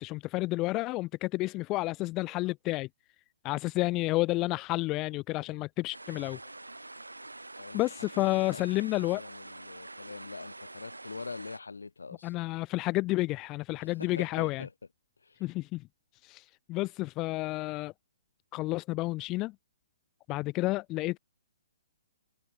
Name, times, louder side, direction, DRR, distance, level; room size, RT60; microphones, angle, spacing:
voice 1, 0.0-2.9 3.4-6.4 7.7-9.2 12.2-14.7 15.4-15.9 16.2-17.9 18.5-19.5 20.3-21.2, left 20 dB, 25° left, 0.4 m, -30 dB
sound 1, 5.9-11.6, right 2 dB, 90° right, 4.0 m, -46 dB
voice 2, 7.6-8.7 9.1-12.3 13.8-14.7 15.2-15.4, left 4 dB, 75° left, 2.5 m, -44 dB
figure-of-eight pair, 125°, 0 cm